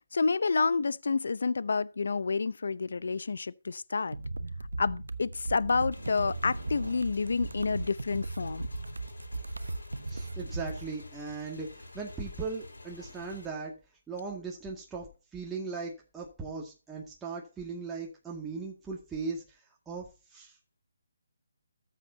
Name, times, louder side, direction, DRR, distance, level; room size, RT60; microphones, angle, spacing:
voice 1, 0.1-4.2 4.8-8.7, left 4 dB, 70° left, 0.7 m, -29 dB
sound 1, 4.1-10.9, right 2 dB, 90° right, 1.1 m, -37 dB
Motorcycle / Engine, 5.9-13.5, left 2 dB, 90° left, 4.8 m, -49 dB
voice 2, 10.1-13.7 14.1-19.6 19.9-20.6, right 4 dB, 10° right, 2.1 m, -38 dB
13.5 x 8.2 x 2.8 m
figure-of-eight pair, 155°, 0 cm